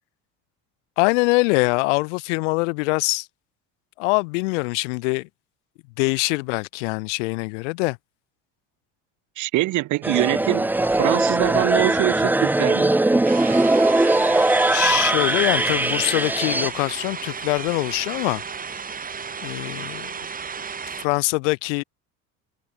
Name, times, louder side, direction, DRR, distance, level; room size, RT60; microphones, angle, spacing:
voice 1, 1.0-3.3 4.0-5.3 6.0-8.0 14.7-18.4 19.4-20.1 21.0-21.8, left 28 dB, 90° left, 3.2 m, -23 dB
voice 2, 9.4-12.9, right 17 dB, 60° right, 1.3 m, -24 dB
sound 1, 10.0-16.7, right 2 dB, 5° right, 0.6 m, -20 dB
sound 2, 13.2-21.1, right 6 dB, 25° right, 2.6 m, -34 dB
supercardioid pair, 110°, 35 cm